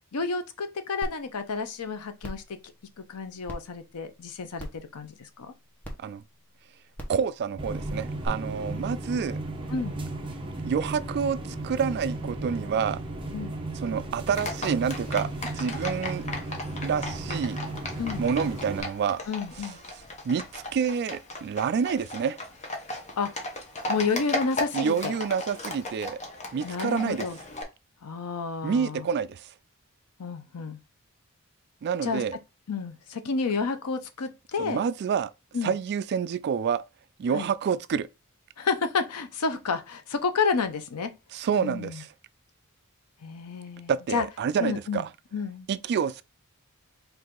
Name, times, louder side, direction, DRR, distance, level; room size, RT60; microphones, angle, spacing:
voice 1, 0.1-2.6 3.0-5.5 9.7-10.0 13.3-13.6 18.0-18.2 19.3-19.8 23.2-23.3 23.9-25.1 26.6-27.4 28.0-29.1 30.2-30.8 32.0-32.2 32.7-34.8 35.5-35.7 37.3-37.5 38.6-41.1 41.6-42.0 43.2-44.2 44.6-45.0 45.3-45.7, left 5 dB, 90° left, 0.6 m, -30 dB
sound 1, 1.0-1.1 1.6-1.7 2.2-2.5 3.5-3.6 4.6-4.8 5.8-5.9 6.9-7.2 8.2-8.3, equal, 10° left, 1.0 m, -36 dB
voice 2, 7.1-9.4 10.6-13.0 13.8-15.3 15.5-16.2 16.8-17.6 18.2-19.2 20.2-22.4 24.7-26.2 26.5-27.3 28.6-29.5 31.8-32.4 34.6-35.3 35.6-36.8 37.2-38.1 41.3-42.1 43.9-45.1 45.7-46.2, right 6 dB, 50° right, 0.3 m, -28 dB
sound 2, 7.6-18.8, right 2 dB, 20° right, 0.9 m, -35 dB
Livestock farm animals working animals, 14.3-27.6, left 2 dB, 30° left, 0.8 m, -36 dB
4.7 x 2.6 x 3.7 m
head